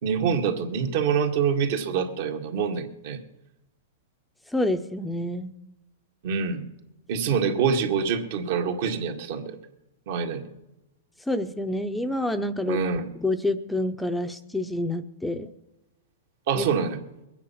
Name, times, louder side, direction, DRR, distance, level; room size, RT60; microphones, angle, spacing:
voice 1, 0.0-3.2 6.2-6.6 7.1-9.5 10.1-10.5 12.7-13.1 16.5-17.0, right 6 dB, 55° right, 5 dB, 1.9 m, -25 dB
voice 2, 4.5-5.5 11.3-12.8 13.2-15.5 16.5-16.7, left 1 dB, 5° left, 7 dB, 0.7 m, -27 dB
21.5 x 9.4 x 5.7 m, 0.96 s
hypercardioid pair, 140°, 0 cm